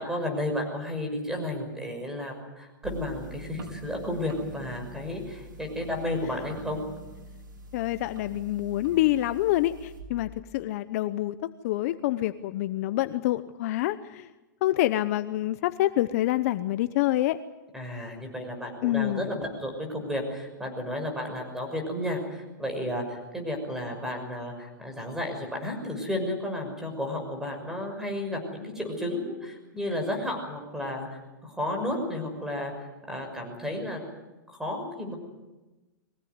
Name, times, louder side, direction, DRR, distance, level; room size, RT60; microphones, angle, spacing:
voice 1, 0.0-6.8 17.7-34.1 34.5-35.2, left 1 dB, 5° right, 3 dB, 6.2 m, -32 dB
sound 1, 2.8-10.0, right 2 dB, 85° right, 6.9 m, -45 dB
voice 2, 7.7-14.3 14.6-17.4 18.8-19.3, left 15 dB, 45° left, 13 dB, 0.8 m, -27 dB
23.0 x 18.0 x 9.6 m, 1.1 s
hypercardioid pair, 145°, 11 cm